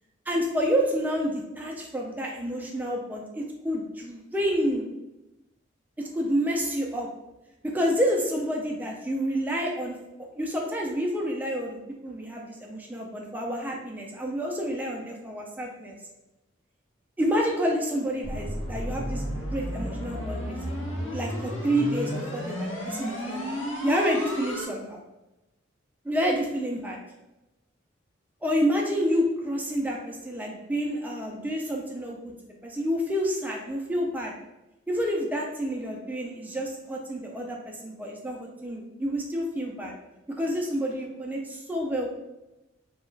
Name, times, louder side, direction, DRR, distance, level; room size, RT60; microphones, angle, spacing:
voice 1, 0.3-4.9 6.0-7.1 7.6-10.0 10.3-15.9 17.2-20.6 21.1-23.5 23.8-25.0 26.0-27.0 28.4-32.2 32.6-34.3 34.9-39.9 40.4-42.1, equal, 10° right, -1 dB, 0.3 m, -29 dB
sound 1, 18.2-24.6, equal, 75° left, 0.7 m, -32 dB
2.4 x 2.2 x 3.1 m, 0.98 s
head